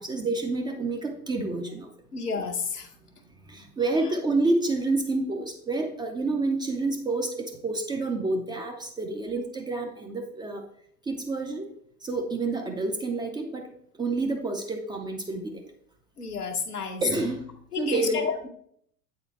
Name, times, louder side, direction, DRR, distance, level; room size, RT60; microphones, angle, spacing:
voice 1, 0.0-1.9 3.4-10.7 11.1-11.7 12.0-13.7 14.0-15.6 17.0-17.5 17.8-18.3, right 3 dB, 10° right, 3 dB, 0.3 m, -28 dB
voice 2, 2.1-2.9 16.2-17.0 17.7-18.5, left 5 dB, 90° left, 3 dB, 0.9 m, -31 dB
8.2 x 4.2 x 3.0 m, 0.67 s
figure-of-eight pair, 80°, 45 cm